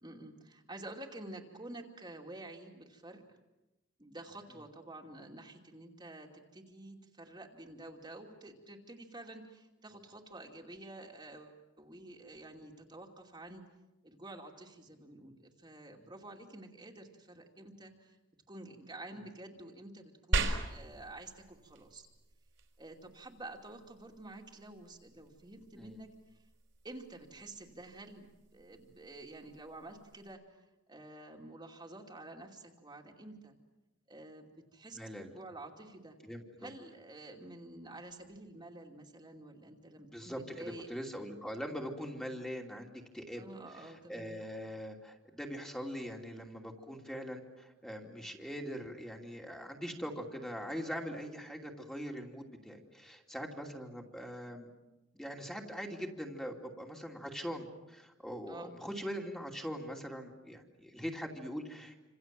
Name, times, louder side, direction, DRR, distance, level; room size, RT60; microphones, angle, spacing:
voice 1, 0.0-3.2 4.0-13.6 14.0-18.2 18.5-22.1 22.8-26.4 26.8-30.6 30.9-33.6 34.1-36.2 36.6-40.9 43.4-44.4 58.5-58.7, right 2 dB, 20° right, 1 dB, 2.7 m, -49 dB
sound 1, 20.3-30.3, right 2 dB, 70° right, 4.3 m, -41 dB
voice 2, 34.9-35.3 36.2-36.7 40.1-43.4 43.7-54.7 55.1-62.0, equal, 5° left, 1 dB, 2.8 m, -42 dB
28.5 x 27.0 x 7.7 m, 1.0 s
head